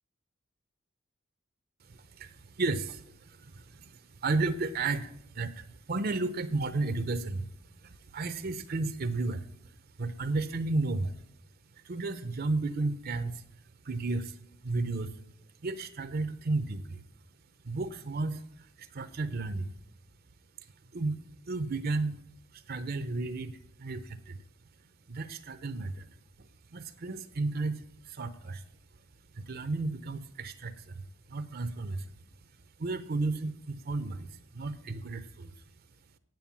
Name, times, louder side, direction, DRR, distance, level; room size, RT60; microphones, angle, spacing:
voice 1, 1.8-11.2 11.7-15.2 15.6-17.0 17.6-19.7 20.8-22.2 22.5-24.4 24.8-28.6 29.3-32.2 32.8-35.7, right 3 dB, 50° right, 12 dB, 0.7 m, -34 dB
9.2 x 7.6 x 7.2 m, 0.76 s
head